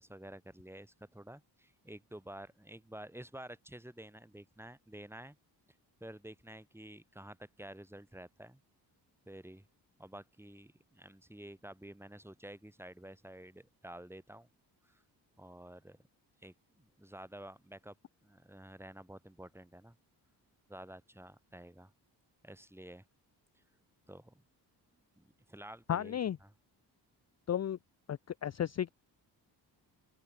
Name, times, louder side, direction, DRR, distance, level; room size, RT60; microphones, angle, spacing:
voice 1, 0.0-5.4 6.0-8.6 9.3-9.6 10.0-14.5 14.8-15.0 15.4-16.0 16.4-18.0 18.2-20.0 20.7-21.9 22.4-23.0 23.5-23.6 24.1-24.4 25.2-26.5, right 1 dB, 5° right, 3.8 m, -51 dB
voice 2, 25.9-26.4 27.5-27.8 28.1-28.9, left 10 dB, 40° left, 0.6 m, -33 dB
open air
cardioid pair, 85°, 43 cm